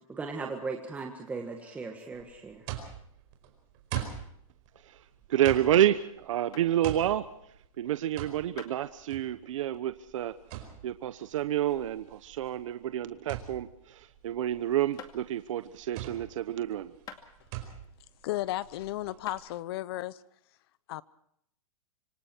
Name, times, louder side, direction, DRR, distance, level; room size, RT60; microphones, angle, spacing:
voice 1, 0.1-2.7, right 4 dB, 10° right, 2 dB, 1.8 m, -37 dB
sound 1, 0.7-2.6 3.9-4.1 6.5-6.7 8.6-8.8 12.0-13.4 13.7-14.1 15.0-15.2 17.1-17.7 18.2-18.7 19.3-19.4, left 8 dB, 20° left, 2.3 m, -50 dB
sound 2, 2.1-19.4, right 11 dB, 35° right, 4.9 m, -43 dB
voice 2, 5.3-7.2 7.8-10.3 10.8-16.9, right 12 dB, 65° right, 11 dB, 1.1 m, -29 dB
voice 3, 18.2-20.2 20.9-21.0, left 16 dB, 45° left, 18 dB, 0.9 m, -34 dB
26.5 x 24.5 x 4.6 m, 0.72 s
hypercardioid pair, 160°, 18 cm